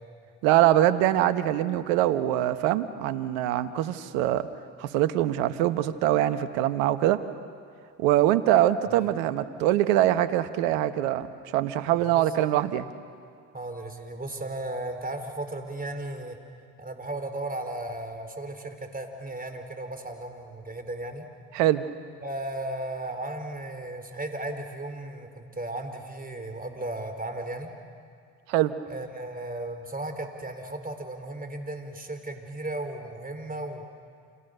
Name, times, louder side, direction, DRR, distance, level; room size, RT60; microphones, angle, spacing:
voice 1, 0.4-4.5 4.8-7.2 8.0-11.3 11.5-12.9 21.5-21.8 28.5-28.7, right 13 dB, 85° right, 12 dB, 1.2 m, -23 dB
voice 2, 12.0-12.3 13.5-16.4 16.8-21.3 22.2-27.7 28.9-33.9, right 1 dB, 20° right, 6 dB, 4.6 m, -35 dB
29.5 x 28.0 x 6.8 m, 2.2 s
hypercardioid pair, 60°, 39 cm